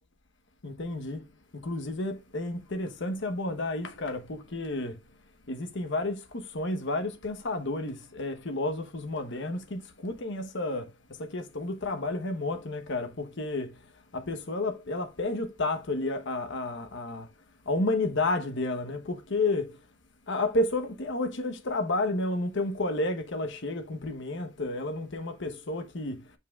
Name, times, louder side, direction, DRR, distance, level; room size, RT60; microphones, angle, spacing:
voice 1, 0.6-1.3 1.5-5.0 5.5-13.8 14.1-17.3 17.7-19.8 20.3-26.2, left 2 dB, 65° left, 1.0 m, -31 dB
7.2 x 5.6 x 2.4 m
head